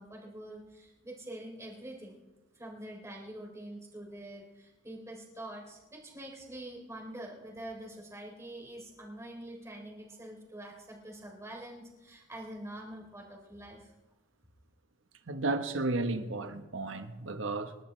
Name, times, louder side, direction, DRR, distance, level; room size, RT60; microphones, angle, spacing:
voice 1, 0.0-2.2 2.5-13.9, right 1 dB, 15° right, 3.6 m, -45 dB
voice 2, 15.3-17.8, right 2 dB, 75° right, 1.2 m, -33 dB
28.0 x 12.0 x 3.3 m
head